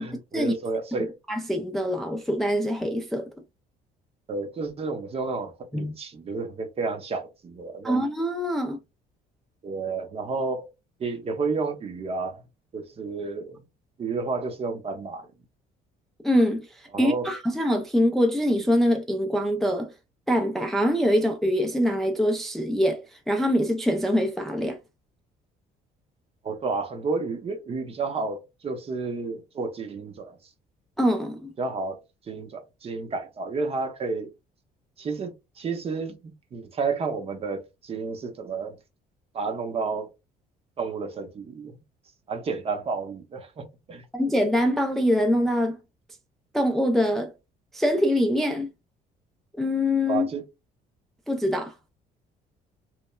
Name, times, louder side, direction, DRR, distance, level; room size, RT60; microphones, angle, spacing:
voice 1, 0.0-1.1 4.3-8.0 9.6-10.7 11.0-12.4 12.7-13.6 14.0-15.3 16.9-17.3 26.4-30.4 31.6-32.0 32.3-34.3 35.0-36.2 36.5-38.8 39.3-40.1 40.8-41.8 42.3-44.1 50.1-50.4, right 4 dB, 35° right, 0.6 m, -31 dB
voice 2, 1.3-3.3 5.7-5.9 7.8-8.8 16.2-16.7 17.0-19.9 20.3-24.8 31.0-31.5 44.1-45.8 46.5-47.3 47.7-48.7 49.6-50.3 51.3-51.7, equal, ahead, 0.3 m, -24 dB
3.0 x 2.1 x 2.2 m
cardioid pair, 110°, 17 cm